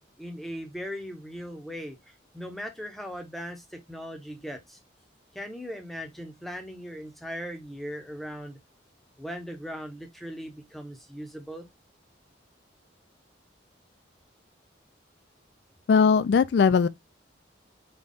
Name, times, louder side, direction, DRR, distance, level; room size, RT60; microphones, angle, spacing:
voice 1, 0.2-4.8 5.3-8.6 9.2-11.7, equal, ahead, 0.6 m, -39 dB
voice 2, 15.9-16.9, left 5 dB, 60° left, 0.3 m, -19 dB
3.9 x 2.2 x 3.5 m
head